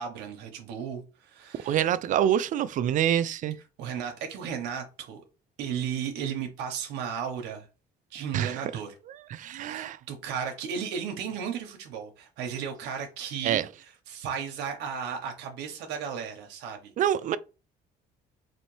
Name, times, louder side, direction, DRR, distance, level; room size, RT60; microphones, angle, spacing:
voice 1, 0.0-1.8 3.8-5.2 5.6-7.7 8.1-8.9 9.5-16.9, right 7 dB, 90° right, 0.9 m, -35 dB
voice 2, 1.6-3.6 8.3-8.6 9.3-10.0 13.4-13.7 17.0-17.4, right 10 dB, 50° right, 0.4 m, -26 dB
4.2 x 2.6 x 3.1 m
cardioid pair, 110°, 17 cm